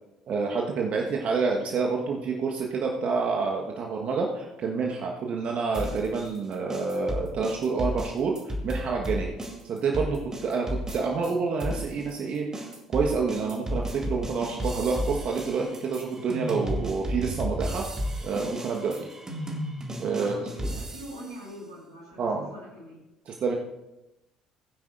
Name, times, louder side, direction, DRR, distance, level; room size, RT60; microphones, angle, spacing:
voice 1, 0.3-9.3 9.6-17.8 18.2-19.1 20.0-20.5 22.2-22.5 23.3-23.5, right 4 dB, 45° right, 0 dB, 1.3 m, -28 dB
sound 1, 5.7-11.3 11.6-21.3, equal, 20° right, 2.1 m, -33 dB
voice 2, 20.2-23.0, equal, 85° right, -6 dB, 4.9 m, -43 dB
19.5 x 9.7 x 2.6 m, 0.94 s
figure-of-eight pair, 55°, 3 cm